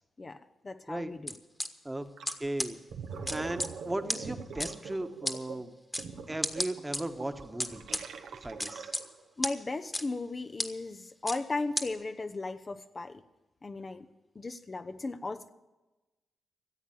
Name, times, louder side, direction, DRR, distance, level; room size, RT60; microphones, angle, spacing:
voice 1, 0.2-1.3 9.4-13.2 13.6-14.1 14.3-15.5, left 3 dB, 40° left, 8 dB, 0.7 m, -36 dB
sound 1, 1.3-1.7 2.2-2.3 2.6-2.7 3.3-3.7 4.1-4.2 4.6-4.7 5.2-5.4 5.9-6.0 6.4-7.0 7.6-8.0 8.6-9.0 9.4-9.5 9.9-10.0 10.6-10.7 11.3-11.4 11.8-11.9, left 1 dB, 15° left, 1.4 m, -31 dB
Gurgling, 2.2-2.4 2.8-9.2, right 5 dB, 80° right, 1.0 m, -43 dB
voice 2, 2.4-2.8 3.3-5.8 6.3-7.8 8.4-8.9, right 1 dB, 15° right, 7 dB, 1.3 m, -36 dB
15.0 x 8.0 x 9.2 m, 1.1 s
supercardioid pair, 50°, 0 cm